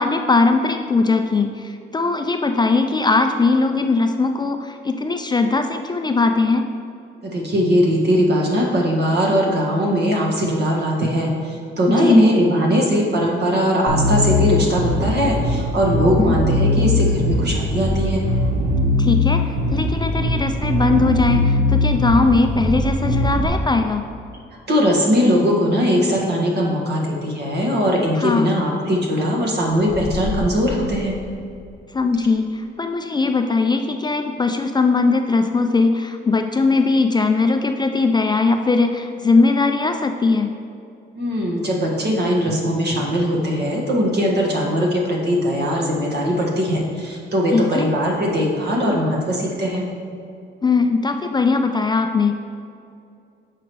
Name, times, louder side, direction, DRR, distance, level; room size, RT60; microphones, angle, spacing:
voice 1, 0.0-6.6 11.9-12.3 16.2-16.3 19.0-24.0 28.2-28.5 31.9-40.5 47.5-47.9 50.6-52.3, left 3 dB, 20° left, 6 dB, 0.4 m, -19 dB
voice 2, 7.2-18.2 24.7-31.1 41.1-49.8, equal, 55° right, -1 dB, 1.6 m, -20 dB
Bass guitar, 13.9-23.5, left 1 dB, 80° right, 1.4 m, -20 dB
sound 1, 29.9-32.2, left 3 dB, 50° left, 0.9 m, -31 dB
7.1 x 4.9 x 4.6 m, 2.5 s
cardioid pair, 90°, 20 cm